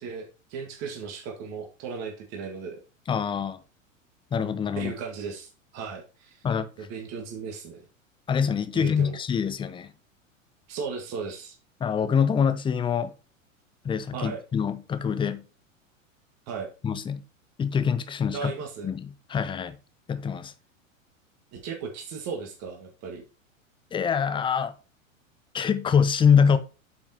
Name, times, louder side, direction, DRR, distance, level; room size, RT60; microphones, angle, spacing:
voice 1, 0.0-2.8 4.8-6.4 6.8-7.8 8.7-9.2 10.7-11.6 14.1-14.4 16.5-16.7 18.3-18.9 21.5-23.2, right 5 dB, 40° right, 1.8 m, -36 dB
voice 2, 3.1-3.6 4.3-4.9 6.4-6.9 8.3-9.9 11.8-13.1 13.8-15.4 16.8-17.2 17.6-18.5 18.8-19.8 20.1-20.5 23.9-24.7 25.5-26.6, left 7 dB, 10° left, 0.6 m, -25 dB
8.6 x 5.7 x 2.9 m
figure-of-eight pair, 95°, 40 cm